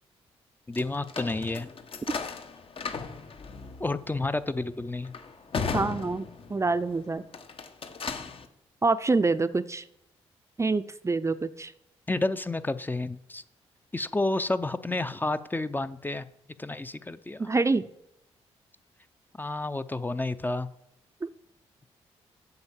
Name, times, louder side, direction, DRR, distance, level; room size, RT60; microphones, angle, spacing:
sound 1, 0.7-6.8 7.2-8.5, left 5 dB, 50° left, 1.2 m, -36 dB
voice 1, 0.7-1.7 3.8-5.1 12.1-13.4 13.9-16.3 16.6-17.5 19.4-20.7, left 2 dB, 15° left, 12 dB, 0.6 m, -30 dB
voice 2, 5.7-7.2 8.8-9.8 10.6-11.7 17.4-17.8 21.2-21.3, right 3 dB, 25° right, 13 dB, 0.6 m, -26 dB
7.9 x 5.5 x 7.4 m, 0.81 s
supercardioid pair, 55°, 12 cm